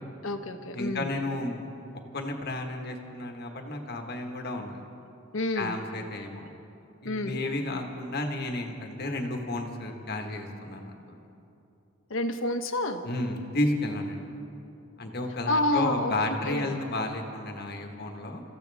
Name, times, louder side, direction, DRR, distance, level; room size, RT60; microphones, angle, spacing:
voice 1, 0.2-1.1 5.3-5.8 7.0-7.4 12.1-13.0 15.5-16.1 16.4-16.7, left 2 dB, 70° left, 7 dB, 1.1 m, -29 dB
voice 2, 0.7-1.7 2.1-4.8 5.5-6.5 7.0-11.2 13.0-14.2 15.0-18.4, left 1 dB, 50° left, 3 dB, 1.4 m, -32 dB
28.0 x 15.0 x 3.5 m, 2.8 s
head